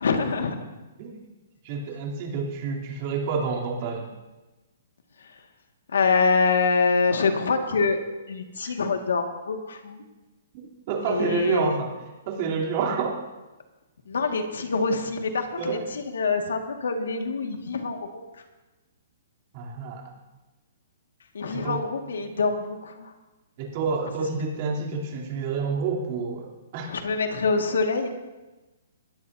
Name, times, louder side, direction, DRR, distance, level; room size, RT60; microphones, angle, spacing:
voice 1, 0.0-0.6 5.2-5.3 5.9-10.0 11.1-11.7 14.1-18.2 21.3-23.1 26.9-28.1, left 4 dB, 90° left, 5 dB, 1.9 m, -25 dB
voice 2, 1.6-4.1 8.6-8.7 10.9-11.9 12.3-13.1 15.6-15.8 19.5-20.1 21.5-21.8 23.6-26.9, right 5 dB, 40° right, -2 dB, 3.2 m, -28 dB
21.0 x 15.5 x 2.7 m, 1.1 s
hypercardioid pair, 160°, 0 cm